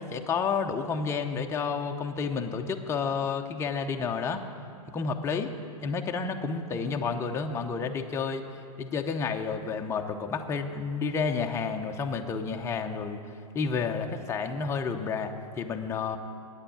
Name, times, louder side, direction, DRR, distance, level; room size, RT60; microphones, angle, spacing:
voice 1, 0.0-4.4 4.9-5.5 5.8-8.4 8.8-13.2 13.5-16.2, left 5 dB, 15° left, 3 dB, 0.7 m, -30 dB
9.0 x 8.9 x 8.7 m, 2.4 s
hypercardioid pair, 120°, 19 cm